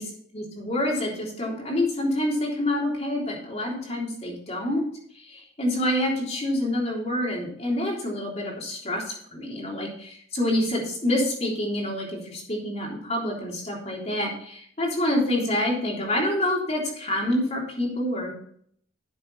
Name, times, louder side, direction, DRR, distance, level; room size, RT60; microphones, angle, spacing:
voice 1, 0.3-4.8 5.2-18.3, left 1 dB, 35° left, -2 dB, 3.5 m, -27 dB
11.0 x 7.7 x 4.2 m, 0.62 s
head